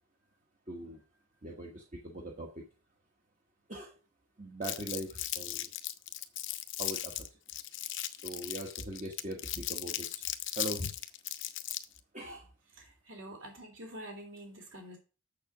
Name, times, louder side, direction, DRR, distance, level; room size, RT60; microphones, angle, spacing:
voice 1, 0.7-1.0 1.4-2.6 3.7-3.9 4.4-5.7 6.8-7.3 8.1-10.3 10.6-10.9 12.1-12.5, right 1 dB, 35° right, 1 dB, 1.3 m, -41 dB
Crumpling crinkling, 4.6-12.0, left 13 dB, 60° left, 0.8 m, -37 dB
voice 2, 12.8-15.0, right 1 dB, 60° right, 2 dB, 3.4 m, -47 dB
7.1 x 6.8 x 6.0 m, 0.35 s
head